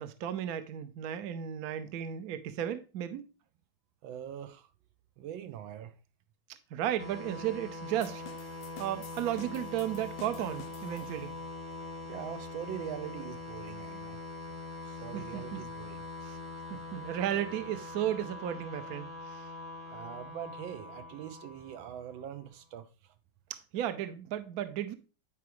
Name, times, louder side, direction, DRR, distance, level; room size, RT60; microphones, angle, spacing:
voice 1, 0.0-3.2 6.7-8.2 8.8-11.4 15.1-15.6 16.2-16.4 16.7-19.4 23.5-24.9, right 11 dB, 65° right, 1.0 m, -34 dB
voice 2, 4.0-4.7 5.2-5.9 12.0-14.2 14.8-16.0 19.9-23.1, right 10 dB, 85° right, 1.5 m, -43 dB
sound 1, 7.0-22.4, left 2 dB, 20° right, 0.8 m, -43 dB
sound 2, 8.0-11.4, left 9 dB, 85° left, 1.4 m, -52 dB
9.3 x 4.9 x 3.0 m
omnidirectional pair, 2.1 m